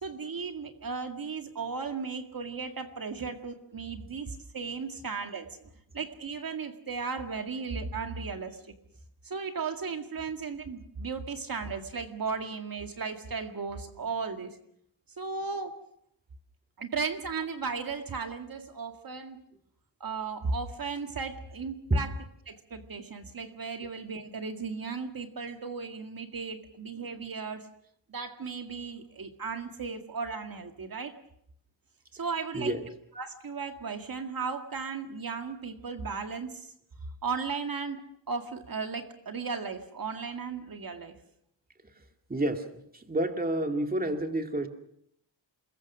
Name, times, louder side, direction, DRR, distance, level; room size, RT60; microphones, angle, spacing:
voice 1, 0.0-5.6 5.9-8.7 9.2-14.6 15.2-15.8 16.8-19.4 20.0-22.2 22.5-27.7 28.1-31.2 32.1-32.8 33.2-36.7 37.2-38.0 38.3-41.1, right 5 dB, 50° right, 5 dB, 2.1 m, -36 dB
voice 2, 32.5-32.9 42.3-44.7, right 1 dB, 20° right, 5 dB, 2.4 m, -29 dB
28.5 x 21.5 x 6.2 m, 0.71 s
wide cardioid pair, 120°, 45 cm